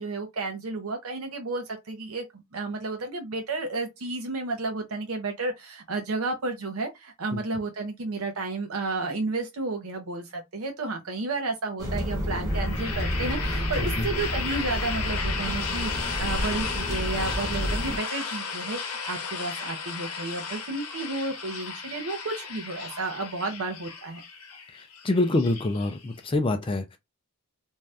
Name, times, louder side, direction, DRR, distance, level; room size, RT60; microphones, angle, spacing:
voice 1, 0.0-24.2, right 3 dB, 70° right, 0.6 m, -32 dB
sound 1, 11.8-18.0, equal, 15° right, 1.0 m, -30 dB
sound 2, 12.5-26.3, left 5 dB, 90° left, 0.8 m, -34 dB
voice 2, 24.7-27.0, left 2 dB, 25° left, 0.4 m, -26 dB
2.6 x 2.2 x 3.3 m
head